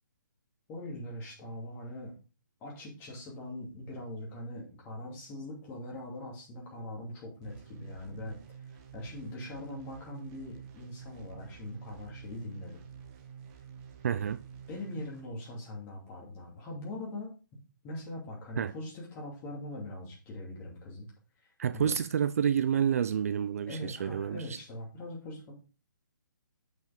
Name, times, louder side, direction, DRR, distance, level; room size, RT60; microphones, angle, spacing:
voice 1, 0.7-2.1 2.6-8.4 8.7-12.8 14.7-17.3 17.8-21.1 21.4-21.9 23.7-25.5, left 1 dB, 20° left, 2.6 m, -42 dB
sound 1, 7.4-15.2, right 7 dB, 20° right, 1.0 m, -49 dB
voice 2, 14.0-14.4 18.6-18.7 21.6-24.4, right 8 dB, 45° right, 0.4 m, -29 dB
8.1 x 5.2 x 3.6 m
hypercardioid pair, 155°, 11 cm